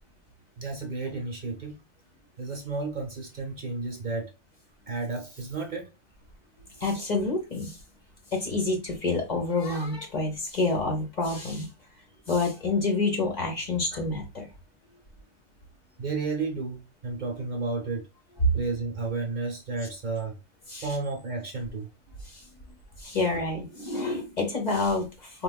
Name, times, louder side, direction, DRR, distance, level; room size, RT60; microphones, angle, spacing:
voice 1, 0.6-1.8 2.4-4.3 4.9-5.9 12.1-12.2 13.9-14.0 16.0-18.1 18.5-20.4 20.8-21.9 23.3-23.4, right 3 dB, 45° right, 0.8 m, -32 dB
voice 2, 6.8-7.8 8.3-11.7 12.3-14.5 20.7-20.9 22.3-22.4 23.0-25.4, left 3 dB, 40° left, 0.8 m, -28 dB
4.2 x 2.3 x 2.2 m
omnidirectional pair, 1.2 m